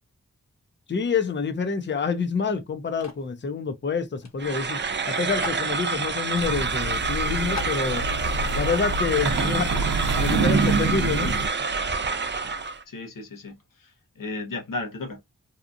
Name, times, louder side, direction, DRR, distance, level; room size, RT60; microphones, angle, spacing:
voice 1, 0.9-4.8 5.1-8.0 8.6-9.7 10.2-11.3, left 5 dB, 35° left, 0.6 m, -27 dB
sound 1, 3.0-3.3 4.2-4.3 4.6-4.7 5.4-5.7 6.4-6.6 7.0-7.1 7.6-7.8, left 4 dB, 55° left, 1.0 m, -37 dB
sound 2, 4.4-12.8, right 4 dB, 35° right, 0.5 m, -28 dB
sound 3, 6.4-11.5, right 3 dB, 85° right, 0.6 m, -26 dB
voice 2, 10.2-10.5 12.9-15.2, left 3 dB, 90° left, 1.0 m, -35 dB
2.8 x 2.4 x 2.5 m
cardioid pair, 45°, 32 cm